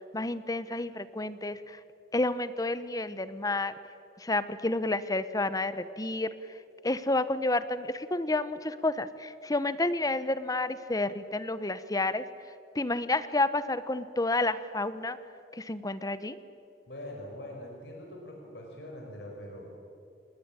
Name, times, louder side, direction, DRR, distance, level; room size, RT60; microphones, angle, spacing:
voice 1, 0.1-1.8 2.1-3.7 4.2-6.3 6.8-12.2 12.7-15.2 15.5-16.4, left 2 dB, 20° left, 13 dB, 1.0 m, -30 dB
voice 2, 16.9-19.7, left 1 dB, 70° left, 0 dB, 5.4 m, -43 dB
28.5 x 20.5 x 8.9 m, 2.5 s
head